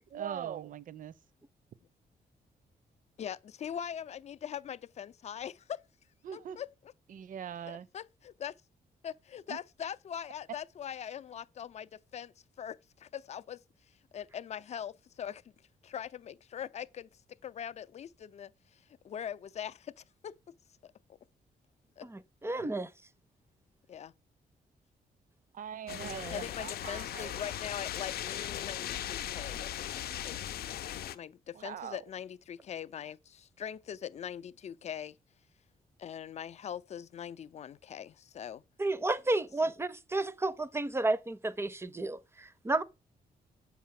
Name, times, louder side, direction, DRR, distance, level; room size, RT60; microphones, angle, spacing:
voice 1, 0.1-1.1 6.2-6.6 7.1-7.9 9.5-9.6 25.5-27.4 31.5-32.0, right 9 dB, 60° right, 0.6 m, -41 dB
voice 2, 3.2-5.8 6.3-6.7 7.6-8.0 8.4-8.5 9.0-13.6 14.1-15.4 15.8-20.4 20.8-20.9 22.0-22.1 23.9-24.1 26.3-30.7 31.1-35.2 36.0-38.6, left 9 dB, 45° left, 0.4 m, -42 dB
voice 3, 22.1-22.9 38.8-42.8, right 2 dB, 15° right, 0.5 m, -32 dB
sound 1, 25.9-31.2, left 11 dB, 85° left, 0.6 m, -38 dB
8.0 x 5.6 x 7.4 m
wide cardioid pair, 145°, 16 cm